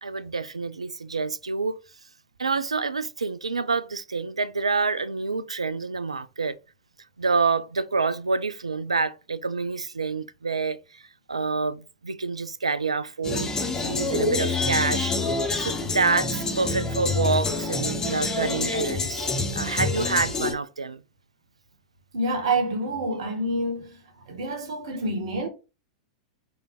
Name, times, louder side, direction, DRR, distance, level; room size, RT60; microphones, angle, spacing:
voice 1, 0.0-1.8 2.4-6.6 7.2-11.0 11.3-13.5 13.8-15.1 15.6-21.0, right 4 dB, 80° right, 0.4 m, -27 dB
sound 1, 13.2-20.5, left 3 dB, 20° left, 1.1 m, -27 dB
voice 2, 22.1-24.0 24.3-25.5, right 2 dB, 65° right, 1.4 m, -27 dB
4.3 x 3.4 x 3.4 m
figure-of-eight pair, 95°, 3 cm